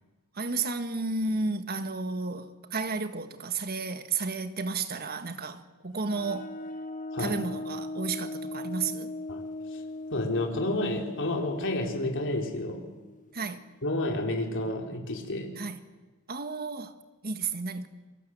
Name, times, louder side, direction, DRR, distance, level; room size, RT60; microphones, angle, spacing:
voice 1, 0.3-6.5 7.2-9.1 13.3-13.7 15.6-15.8 16.3-16.9 17.2-17.9, right 3 dB, 45° right, 1.6 m, -32 dB
sound 1, 6.0-13.4, left 2 dB, 35° left, 1.4 m, -39 dB
voice 2, 10.1-12.8 13.8-15.5, left 1 dB, 60° left, 4.2 m, -30 dB
28.0 x 23.0 x 8.0 m
head